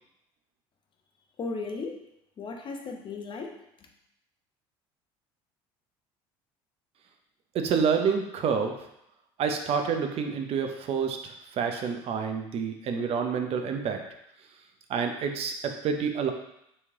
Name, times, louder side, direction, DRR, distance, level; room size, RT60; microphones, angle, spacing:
voice 1, 1.4-2.0 2.4-3.9, left 3 dB, 40° left, 2 dB, 0.8 m, -36 dB
voice 2, 7.5-8.7 9.4-14.0 14.9-16.3, right 6 dB, 50° right, 5 dB, 0.6 m, -28 dB
4.3 x 3.1 x 3.6 m, 0.79 s
hypercardioid pair, 75°, 13 cm